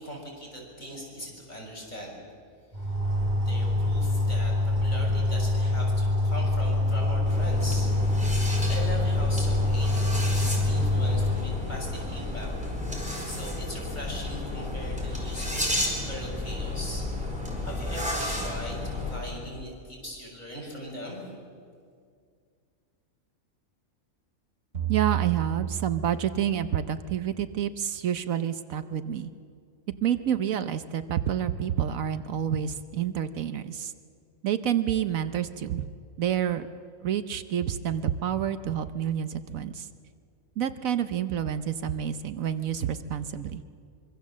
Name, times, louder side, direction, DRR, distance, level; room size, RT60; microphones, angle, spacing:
voice 1, 0.0-2.1 2.8-2.9 3.2-7.9 8.7-12.5 12.9-15.7 16.1-17.1 17.6-21.3, equal, 30° left, -2 dB, 6.6 m, -40 dB
sound 1, 2.7-11.4, left 2 dB, 30° right, 4.8 m, -25 dB
sound 2, 7.3-19.2, left 1 dB, 5° right, 4.6 m, -32 dB
sound 3, 24.7-27.1, right 12 dB, 55° right, 3.7 m, -32 dB
voice 2, 24.9-29.3 30.0-33.9 34.4-35.9 36.2-36.7 37.0-39.9 40.6-43.6, right 9 dB, 75° right, 11 dB, 1.2 m, -28 dB
25.0 x 24.0 x 7.4 m, 2.2 s
omnidirectional pair, 1.5 m